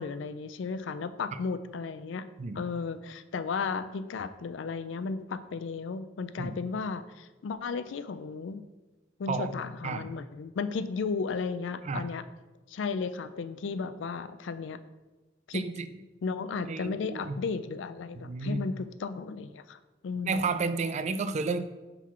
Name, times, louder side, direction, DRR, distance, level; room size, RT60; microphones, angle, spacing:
voice 1, 0.0-2.2 2.5-8.6 9.2-12.2 12.7-14.8 15.5-15.6 16.2-19.8 20.0-20.5, left 5 dB, 70° left, 13 dB, 0.4 m, -34 dB
voice 2, 15.5-15.9 16.7-17.4 18.2-18.6 20.3-21.6, right 4 dB, 35° right, 11 dB, 0.3 m, -31 dB
4.6 x 3.9 x 5.6 m, 1.2 s
head